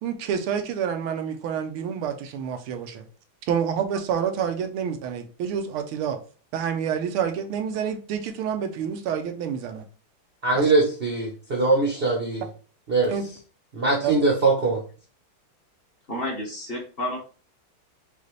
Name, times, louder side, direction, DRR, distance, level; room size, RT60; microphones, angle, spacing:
voice 1, 0.0-3.0 3.5-6.2 6.5-9.8 10.5-10.7 13.1-13.3 14.0-14.1, right 8 dB, 85° right, 7 dB, 1.6 m, -28 dB
voice 2, 10.4-12.4 12.9-13.1 13.7-14.8, right 3 dB, 40° right, -2 dB, 0.8 m, -22 dB
voice 3, 16.1-17.2, left 1 dB, 35° left, -2 dB, 1.1 m, -30 dB
5.2 x 2.4 x 3.1 m, 0.37 s
omnidirectional pair, 2.3 m